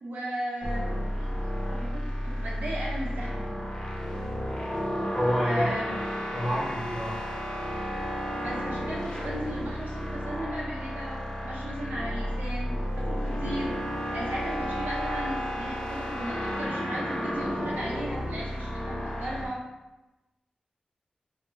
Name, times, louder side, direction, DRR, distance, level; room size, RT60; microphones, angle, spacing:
voice 1, 0.0-3.5 5.4-5.9 8.2-13.7 14.1-19.6, equal, 80° right, -5 dB, 0.6 m, -36 dB
sound 1, 0.6-19.5, equal, 30° left, 0.5 m, -32 dB
voice 2, 5.1-5.7 6.3-7.1, equal, ahead, -6 dB, 0.8 m, -28 dB
2.3 x 2.1 x 3.1 m, 1.1 s
wide cardioid pair, 70°, 3 cm